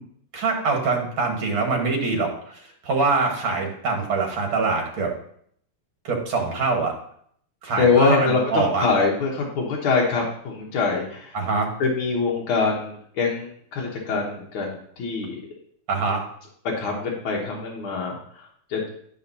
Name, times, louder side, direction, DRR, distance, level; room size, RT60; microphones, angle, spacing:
voice 1, 0.3-5.1 6.0-6.9 7.6-8.9 11.3-11.7 15.9-16.2, right 4 dB, 65° right, 1 dB, 2.2 m, -24 dB
voice 2, 7.8-11.4 11.8-15.4 16.8-18.9, left 4 dB, 70° left, -2 dB, 1.9 m, -24 dB
11.0 x 5.2 x 2.7 m, 0.64 s
omnidirectional pair, 2.4 m